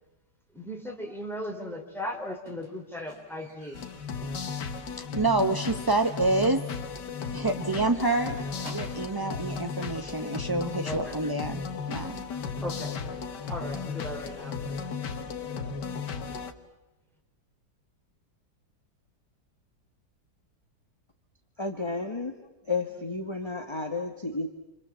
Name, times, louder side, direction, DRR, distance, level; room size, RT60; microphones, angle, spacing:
voice 1, 0.5-3.8 10.8-11.2 12.6-14.6, left 1 dB, ahead, 1 dB, 3.5 m, -37 dB
Squeak, 2.5-5.2 5.6-6.0 6.2-6.3 6.7-6.8 7.1-7.2 7.5-9.3 10.1-10.2, right 1 dB, 40° right, 5.4 m, -51 dB
sound 1, 3.7-16.5, left 5 dB, 75° left, 1.9 m, -35 dB
voice 2, 4.9-6.6 7.3-8.4 8.7-12.2, right 2 dB, 20° right, 6 dB, 0.6 m, -27 dB
voice 3, 21.6-22.3 22.6-24.5, left 3 dB, 15° left, 4 dB, 1.5 m, -32 dB
28.5 x 26.0 x 7.4 m, 0.98 s
omnidirectional pair, 1.9 m